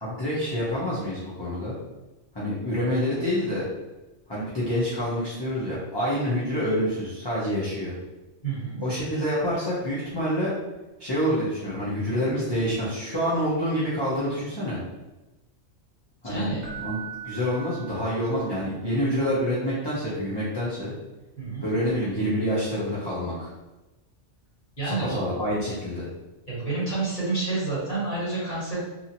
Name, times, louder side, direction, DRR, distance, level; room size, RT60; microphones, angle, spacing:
voice 1, 0.0-1.8 2.3-3.7 4.3-7.9 8.8-10.5 11.0-14.8 16.2-16.5 16.8-17.0 17.2-20.9 21.6-23.5 24.8-26.1, equal, 25° left, -9 dB, 0.7 m, -27 dB
voice 2, 8.4-8.8 16.2-16.6 21.4-21.6 24.8-25.2 26.5-28.8, right 3 dB, 40° left, -9 dB, 1.5 m, -29 dB
Keyboard (musical), 16.6-18.6 21.8-22.0, right 8 dB, 65° right, 1.1 m, -40 dB
2.8 x 2.7 x 2.7 m, 1.1 s
omnidirectional pair, 1.3 m